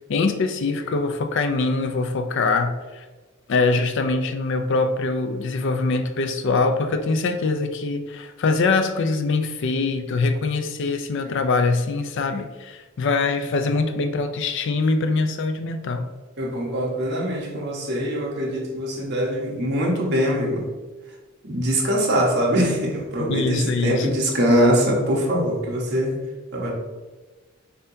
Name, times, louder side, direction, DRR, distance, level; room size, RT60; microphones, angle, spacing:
voice 1, 0.1-3.0 3.5-16.1 23.3-24.2, left 3 dB, 60° left, 7 dB, 0.4 m, -23 dB
voice 2, 16.4-20.6 21.4-26.2 26.5-26.7, equal, 55° right, -1 dB, 1.0 m, -22 dB
5.5 x 2.7 x 2.7 m, 1.2 s
head